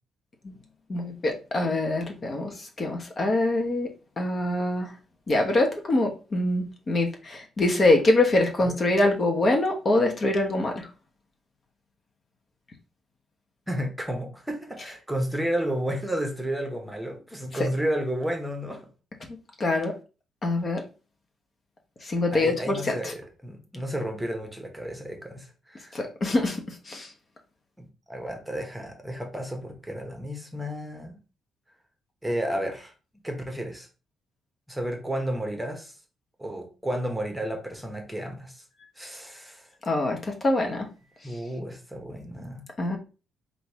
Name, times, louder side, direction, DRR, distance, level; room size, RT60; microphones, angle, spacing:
voice 1, 0.9-2.5 2.8-3.9 4.2-4.9 5.3-10.9 19.6-19.9 20.4-20.8 22.1-22.8 25.9-26.6 26.9-27.1 39.9-40.9 42.8-43.0, left 2 dB, 40° left, 2 dB, 1.0 m, -24 dB
voice 2, 13.7-18.9 19.7-19.9 22.3-25.9 27.8-31.2 32.2-32.9 33.2-33.9 34.7-35.9 36.4-38.6 39.0-39.7 41.2-42.6, right 1 dB, 5° right, 3 dB, 1.1 m, -32 dB
3.9 x 2.7 x 4.6 m, 0.33 s
cardioid pair, 90°, 0 cm